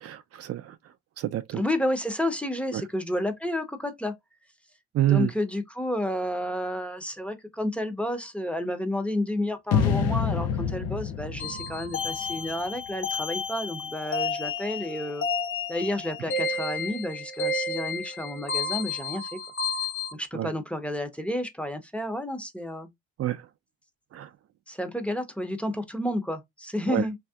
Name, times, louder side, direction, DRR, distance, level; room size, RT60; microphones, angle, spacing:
voice 1, 0.0-0.8 1.2-1.6 2.7-2.8 4.9-5.3 20.3-20.5 23.2-23.4 24.1-24.3 26.9-27.0, right 13 dB, 55° right, 0.4 m, -27 dB
voice 2, 1.5-4.2 5.1-15.2 15.7-19.4 20.1-22.9 24.7-27.2, left 1 dB, 5° left, 0.6 m, -31 dB
sound 1, 9.7-12.9, left 7 dB, 70° left, 0.6 m, -27 dB
sound 2, 11.4-20.1, left 3 dB, 45° left, 1.1 m, -31 dB
3.2 x 2.7 x 2.3 m
cardioid pair, 90°, 30 cm